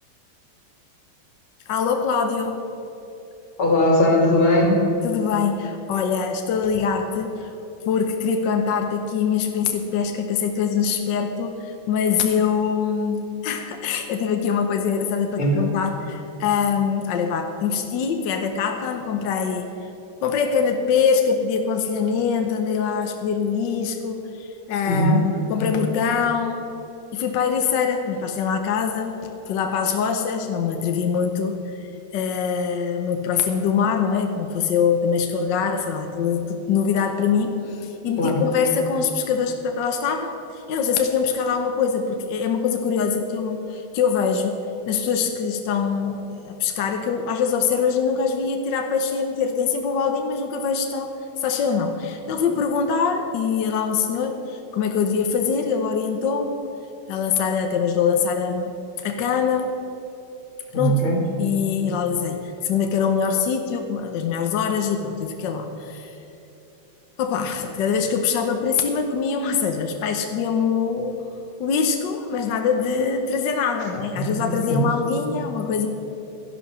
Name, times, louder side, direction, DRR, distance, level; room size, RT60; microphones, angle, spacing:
voice 1, 1.7-2.6 5.0-7.5 7.8-19.7 20.2-26.7 27.1-31.8 32.1-44.6 44.9-56.6 57.1-59.7 60.7-61.1 61.4-66.2 67.2-71.1 71.6-75.9, left 6 dB, 65° left, 5 dB, 1.4 m, -23 dB
voice 2, 3.6-4.9 15.4-15.7 24.9-25.2 38.2-38.4 60.7-61.2 74.1-74.8, equal, 85° left, 0 dB, 3.1 m, -19 dB
13.0 x 11.0 x 6.1 m, 2.9 s
omnidirectional pair, 2.3 m